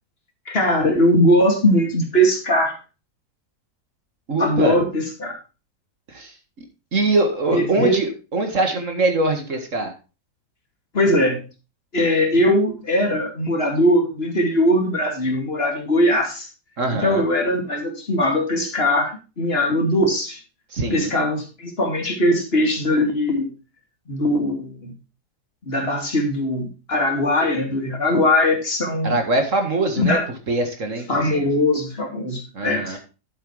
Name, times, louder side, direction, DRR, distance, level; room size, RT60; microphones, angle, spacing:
voice 1, 0.5-2.7 4.4-5.4 7.5-8.0 10.9-11.4 11.9-16.5 16.9-20.4 20.9-23.5 24.1-24.9 25.7-29.2 30.0-30.2 31.1-33.0, left 1 dB, 35° left, 2 dB, 2.7 m, -20 dB
voice 2, 4.3-4.8 6.1-6.3 6.9-9.9 16.8-17.2 20.7-21.2 29.0-30.2 30.5-31.5 32.5-33.0, right 2 dB, 50° right, 5 dB, 2.0 m, -23 dB
11.0 x 7.9 x 3.3 m, 0.31 s
omnidirectional pair, 1.8 m